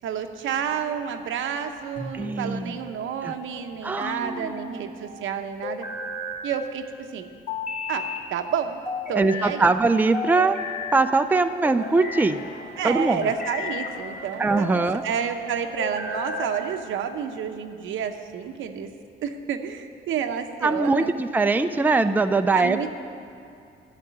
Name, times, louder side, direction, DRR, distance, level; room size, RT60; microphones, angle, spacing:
voice 1, 0.0-5.9 6.4-7.2 7.9-8.8 9.1-9.7 12.8-18.9 19.2-21.2 22.5-22.9, right 8 dB, 80° right, 6 dB, 0.9 m, -30 dB
sound 1, 2.0-2.6 4.0-4.8 5.6-6.4 7.5-8.3 8.8-9.5 10.1-11.0 11.6-12.3 13.0-14.0 14.5-15.0 15.8-16.6, left 3 dB, 35° left, 2.4 m, -33 dB
voice 2, 2.1-2.8 3.2-3.3 3.8-4.5 9.1-12.4 12.8-13.2 14.4-15.0 20.6-22.9, right 3 dB, 10° right, 8 dB, 0.4 m, -22 dB
sound 2, 11.7-16.7, left 2 dB, 60° left, 1.7 m, -46 dB
11.5 x 6.7 x 9.3 m, 2.6 s
cardioid pair, 90°, 20 cm